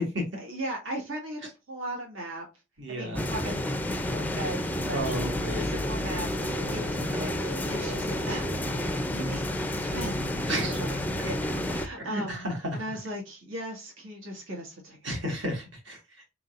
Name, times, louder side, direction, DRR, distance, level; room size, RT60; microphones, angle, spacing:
voice 1, 0.4-1.4 1.7-2.5 2.9-3.6 4.1-5.1 5.5-10.2 10.7-12.4 12.7-15.0, right 1 dB, 80° right, -1 dB, 1.8 m, -38 dB
voice 2, 2.8-3.3 4.9-5.7 6.6-6.9 10.5-10.8 12.0-12.8 15.0-16.2, equal, 65° right, 1 dB, 1.7 m, -32 dB
sound 1, 3.1-11.9, left 1 dB, 10° left, 0.4 m, -30 dB
sound 2, 5.0-9.7, left 1 dB, 45° right, 0.6 m, -40 dB
4.6 x 3.9 x 2.5 m, 0.27 s
head